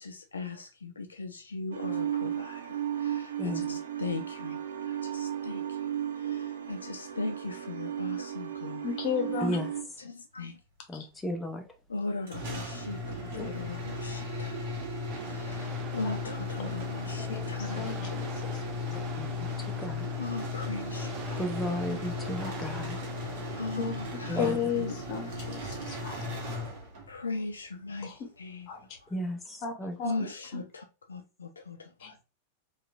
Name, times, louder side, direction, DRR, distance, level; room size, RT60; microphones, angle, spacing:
voice 1, 0.0-8.9 10.0-10.6 11.9-14.6 14.9-18.2 19.5-19.7 20.2-21.5 23.3-25.0 25.3-25.4 27.1-28.7 29.0-29.1 30.0-32.2, left 3 dB, 80° left, 0.3 m, -39 dB
sound 1, 1.7-9.8, right 10 dB, 70° right, 0.3 m, -34 dB
voice 2, 8.8-9.6 10.9-11.1 13.3-13.5 17.3-17.5 17.8-18.3 18.5-18.6 18.9-19.0 22.4-22.7 23.8-23.9 24.3-26.2 28.0-28.1 28.7-28.9 29.6-30.1 30.5-30.6 32.0-32.1, left 7 dB, 45° left, 0.7 m, -34 dB
voice 3, 10.9-11.6 19.2-19.3 19.8-20.1 21.4-23.0 24.3-24.6 29.1-30.0, left 1 dB, 10° left, 0.5 m, -34 dB
sound 2, 12.3-27.2, left 3 dB, 55° right, 0.9 m, -36 dB
sound 3, 15.1-23.7, right 4 dB, 30° right, 0.7 m, -46 dB
3.0 x 2.3 x 2.3 m
figure-of-eight pair, 95°, 0 cm